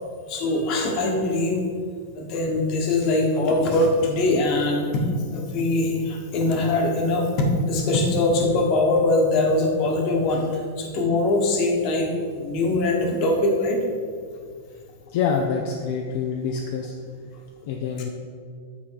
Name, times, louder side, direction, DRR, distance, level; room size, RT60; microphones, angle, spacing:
voice 1, 0.3-1.7 2.1-13.8, left 2 dB, 40° left, 1 dB, 1.3 m, -22 dB
voice 2, 15.1-16.9 17.6-18.1, left 6 dB, 55° left, 2 dB, 0.6 m, -26 dB
8.4 x 4.2 x 4.8 m, 2.1 s
supercardioid pair, 150°, 0 cm